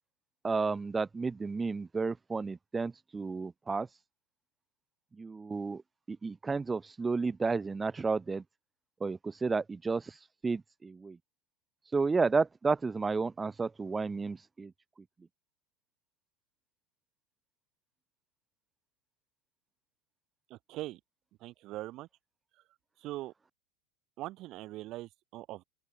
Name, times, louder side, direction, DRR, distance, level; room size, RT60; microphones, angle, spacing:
voice 1, 0.4-3.9 5.2-5.8 6.1-8.4 9.0-11.2 11.9-14.7, right 4 dB, 15° right, 2.6 m, -32 dB
voice 2, 20.5-21.0 21.4-22.1 23.0-23.3 24.2-25.6, right 17 dB, 50° right, 6.2 m, -41 dB
open air
hypercardioid pair, 85°, 0 cm